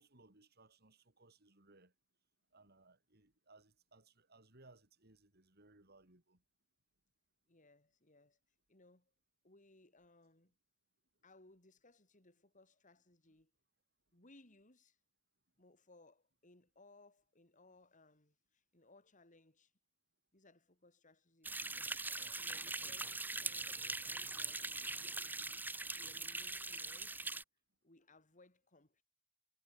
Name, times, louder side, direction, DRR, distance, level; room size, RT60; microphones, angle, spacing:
voice 1, 0.0-1.9 2.5-6.4, right 2 dB, 50° right, 4.5 m, -65 dB
voice 2, 7.5-8.4 8.7-9.1 9.4-10.5 11.2-13.5 14.1-15.0 15.6-19.7 20.3-21.9 22.4-24.9 25.9-27.3 27.8-29.0, left 2 dB, 40° left, 4.8 m, -65 dB
sound 1, 21.4-27.4, right 3 dB, 10° right, 1.2 m, -42 dB
head